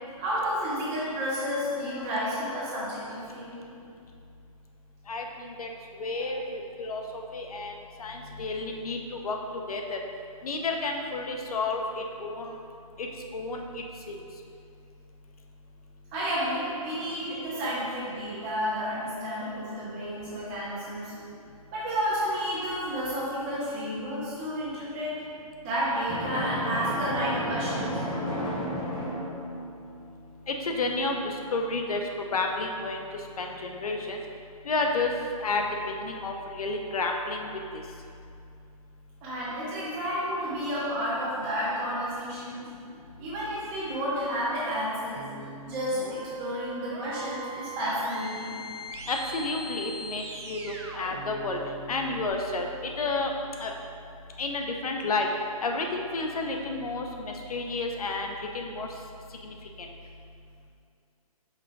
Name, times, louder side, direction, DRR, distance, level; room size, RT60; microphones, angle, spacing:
voice 1, 0.2-3.7 6.1-6.3 16.1-21.1 21.7-25.2 25.6-28.0 39.2-42.6 43.2-45.3 45.6-48.6, equal, 20° right, -9 dB, 1.5 m, -31 dB
voice 2, 5.1-5.7 6.0-7.7 8.0-9.4 9.7-10.0 10.4-12.6 13.0-13.1 13.3-13.6 14.1-14.2 30.5-32.0 32.3-33.1 33.4-34.2 34.6-35.1 35.4-35.6 36.0-37.8 49.1-51.6 51.9-53.3 53.6-53.7 54.4-55.3 55.6-58.9 59.4-59.9, left 3 dB, 75° left, 2 dB, 0.8 m, -31 dB
Drum, 26.1-29.8, equal, 5° left, 0.4 m, -32 dB
sound 1, 45.2-52.3, right 2 dB, 45° right, 0.7 m, -41 dB
5.6 x 5.3 x 3.5 m, 2.5 s
hypercardioid pair, 170°, 19 cm